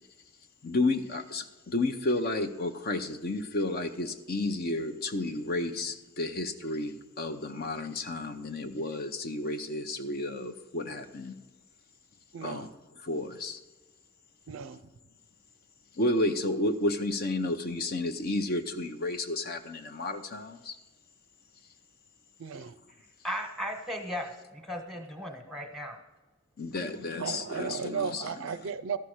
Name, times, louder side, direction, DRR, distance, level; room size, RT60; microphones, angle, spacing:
voice 1, 0.6-11.4 12.4-12.7 13.0-13.6 16.0-20.8 26.6-28.2, left 2 dB, 45° left, 0.7 m, -31 dB
voice 2, 12.3-12.7 14.5-14.8 22.4-22.8 27.2-29.0, right 6 dB, 60° right, 0.4 m, -35 dB
voice 3, 23.2-26.0, equal, ahead, 1.3 m, -36 dB
13.0 x 5.7 x 6.4 m
head